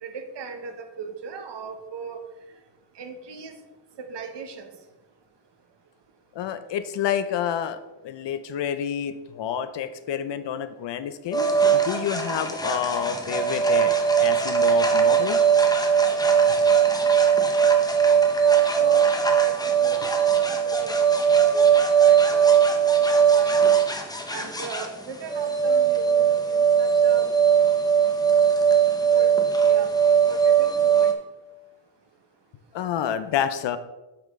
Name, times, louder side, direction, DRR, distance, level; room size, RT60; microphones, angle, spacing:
voice 1, 0.0-2.2 3.0-3.6 4.0-4.7 18.4-19.0 19.3-19.5 19.8-22.5 23.1-23.6 24.3-27.3 29.1-29.3 29.6-29.9 30.3-31.1, right 5 dB, 70° right, 6 dB, 1.1 m, -38 dB
voice 2, 6.3-15.4 32.7-33.8, left 9 dB, 70° left, 11 dB, 0.6 m, -29 dB
sound 1, 11.3-31.1, right 7 dB, 10° left, 0.7 m, -20 dB
8.7 x 5.7 x 3.6 m, 1.1 s
wide cardioid pair, 160°, 44 cm